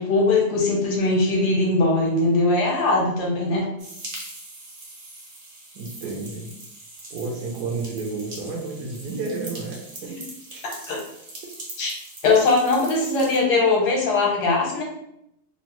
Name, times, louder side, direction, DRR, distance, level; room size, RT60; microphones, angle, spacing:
voice 1, 0.0-3.7 10.0-10.1 10.6-11.0 11.8-11.9 12.2-14.8, left 3 dB, 85° left, -1 dB, 1.3 m, -21 dB
sound 1, 3.8-13.4, right 2 dB, 50° right, 0.6 m, -41 dB
voice 2, 5.7-6.5 7.1-10.2 10.5-10.6 11.4-11.5, right 3 dB, 75° right, -1 dB, 1.0 m, -31 dB
3.1 x 2.0 x 2.9 m, 0.79 s
omnidirectional pair, 1.7 m